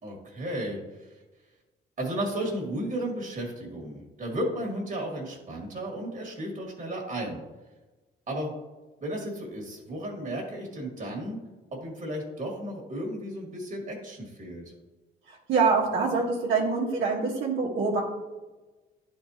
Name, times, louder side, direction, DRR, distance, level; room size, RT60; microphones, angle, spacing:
voice 1, 0.0-1.2 2.0-7.4 8.3-8.5 9.0-11.4 11.7-14.6, right 1 dB, 40° right, 0 dB, 1.9 m, -34 dB
voice 2, 15.3-18.0, right 4 dB, 75° right, -5 dB, 1.3 m, -25 dB
10.0 x 4.4 x 2.8 m, 1.2 s
cardioid pair, 90°, 20 cm